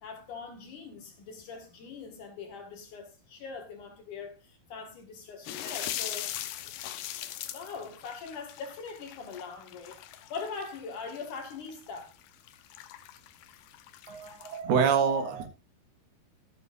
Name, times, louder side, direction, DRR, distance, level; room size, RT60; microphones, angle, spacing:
voice 1, 0.0-6.4 7.5-12.1, left 5 dB, 60° left, 2.9 m, -42 dB
sound 1, 5.5-14.6, left 12 dB, 85° left, 3.0 m, -40 dB
voice 2, 14.1-15.5, right 6 dB, 75° right, 3.5 m, -26 dB
13.5 x 11.5 x 2.5 m
omnidirectional pair, 4.6 m